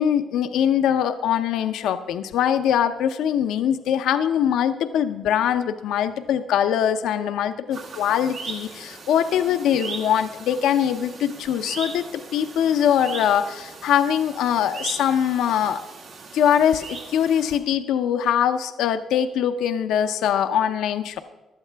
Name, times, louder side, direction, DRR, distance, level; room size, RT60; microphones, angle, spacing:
voice 1, 0.0-15.8 16.3-21.2, left 9 dB, 85° left, 8 dB, 0.6 m, -22 dB
sound 1, 7.7-17.6, right 4 dB, 70° right, 2.0 m, -39 dB
15.5 x 11.5 x 3.4 m, 1.1 s
cardioid pair, 90°, 0 cm